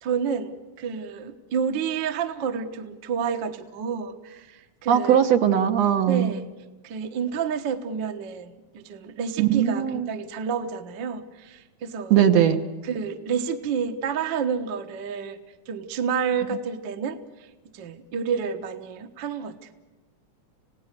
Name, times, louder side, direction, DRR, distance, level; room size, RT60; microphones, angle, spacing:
voice 1, 0.0-5.2 6.1-6.5 6.8-12.2 12.8-15.4 15.7-17.2 17.7-19.6, right 6 dB, 50° right, 6 dB, 1.6 m, -29 dB
voice 2, 4.9-6.3 9.4-10.1 12.1-12.6, right 9 dB, 65° right, 6 dB, 2.2 m, -19 dB
28.0 x 17.5 x 6.7 m, 1.2 s
omnidirectional pair, 3.4 m